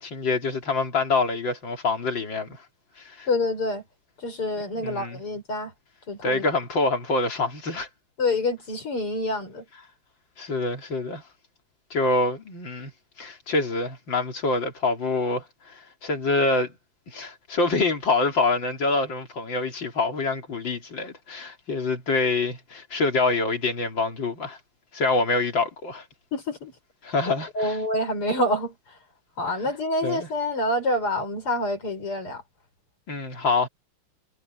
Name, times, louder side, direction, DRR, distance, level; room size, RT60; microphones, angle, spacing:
voice 1, 0.0-2.6 3.0-3.3 4.8-5.2 6.2-7.9 10.4-11.2 11.9-12.9 13.2-16.7 17.1-24.6 24.9-26.0 27.0-27.8 30.0-30.3 33.1-33.7, left 3 dB, 60° left, 3.8 m, -26 dB
voice 2, 3.3-3.8 4.2-5.7 6.1-6.4 8.2-9.6 26.3-26.7 27.5-28.7 29.4-32.4, left 1 dB, 85° left, 7.4 m, -27 dB
omnidirectional pair, 2.4 m